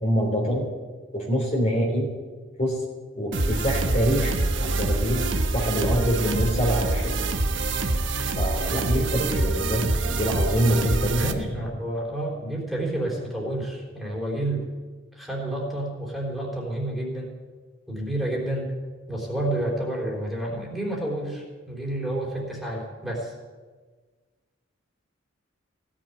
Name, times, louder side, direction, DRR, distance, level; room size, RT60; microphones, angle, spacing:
voice 1, 0.0-0.7 1.1-2.1 2.6-2.8 3.2-7.1 8.3-11.5, equal, 35° left, 0 dB, 3.3 m, -25 dB
sound 1, 3.3-11.3, right 2 dB, 65° right, 1.2 m, -25 dB
voice 2, 11.1-14.7 15.1-17.4 17.9-18.8 19.1-23.3, right 1 dB, ahead, -3 dB, 3.7 m, -30 dB
16.5 x 7.5 x 9.6 m, 1.4 s
head